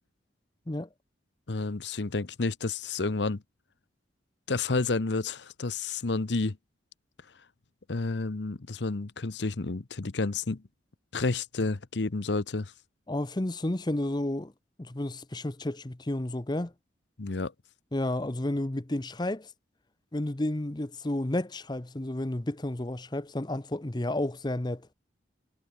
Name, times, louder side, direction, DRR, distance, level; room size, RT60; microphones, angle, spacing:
voice 1, 1.5-3.4 4.5-6.6 7.9-10.6 11.1-12.7 17.2-17.5, left 3 dB, 70° left, 0.9 m, -30 dB
voice 2, 13.1-14.5 14.8-16.7 17.9-19.5 20.1-24.9, left 1 dB, 25° left, 0.8 m, -31 dB
head